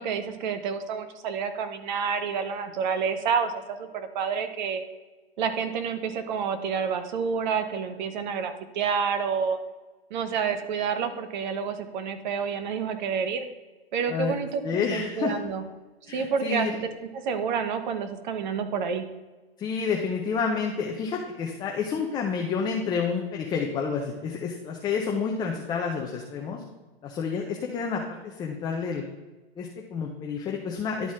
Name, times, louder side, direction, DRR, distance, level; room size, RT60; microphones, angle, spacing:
voice 1, 0.0-4.8 5.4-9.6 10.1-13.4 13.9-15.6 16.1-19.0, right 6 dB, 50° right, 9 dB, 1.0 m, -29 dB
voice 2, 14.6-15.3 16.1-16.8 19.6-26.6 27.0-29.0 29.6-31.1, left 5 dB, 15° left, 0 dB, 0.6 m, -29 dB
11.5 x 4.0 x 3.6 m, 1.2 s
hypercardioid pair, 135°, 31 cm